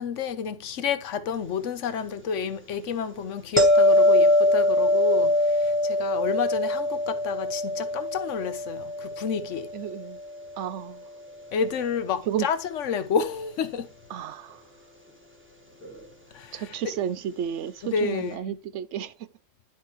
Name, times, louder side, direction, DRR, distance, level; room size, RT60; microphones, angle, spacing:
voice 1, 0.0-9.7 11.5-13.9 16.3-16.8 17.8-18.5, left 6 dB, 75° left, 1.1 m, -30 dB
sound 1, 3.6-10.6 15.8-16.0, left 1 dB, 10° right, 1.5 m, -23 dB
voice 2, 9.7-10.2 10.6-11.0 12.3-12.5 14.1-14.6 16.5-19.1, right 9 dB, 75° right, 0.9 m, -32 dB
11.5 x 4.7 x 3.1 m
omnidirectional pair, 1.3 m